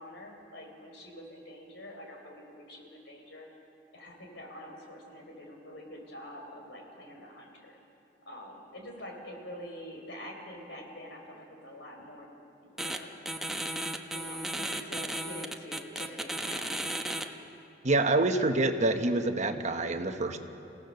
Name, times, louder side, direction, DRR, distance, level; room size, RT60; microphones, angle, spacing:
voice 1, 0.0-3.5 3.9-7.8 8.3-12.3 12.6-13.3 14.1-16.8, equal, 75° left, 1 dB, 4.0 m, -46 dB
sound 1, 12.8-13.0 13.3-17.2, right 1 dB, ahead, 0.9 m, -34 dB
voice 2, 17.8-20.4, right 2 dB, 40° right, 7 dB, 1.1 m, -26 dB
28.5 x 16.5 x 6.7 m, 2.9 s
head